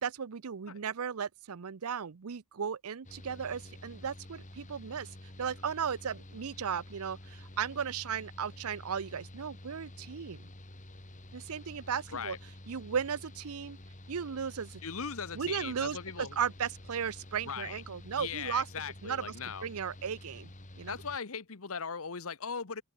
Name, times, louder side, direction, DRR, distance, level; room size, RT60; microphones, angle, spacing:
voice 1, 0.0-10.5 11.3-12.4 12.7-13.8 14.1-14.8 15.3-18.7 19.0-19.3 19.6-20.5 20.8-21.0, right 7 dB, 75° right, 0.6 m, -36 dB
Mechanical fan, 3.0-21.2, left 1 dB, 35° left, 3.8 m, -50 dB
voice 2, 14.8-16.4 17.4-17.8 18.2-19.7 20.9-22.8, left 6 dB, 65° left, 1.1 m, -39 dB
open air
head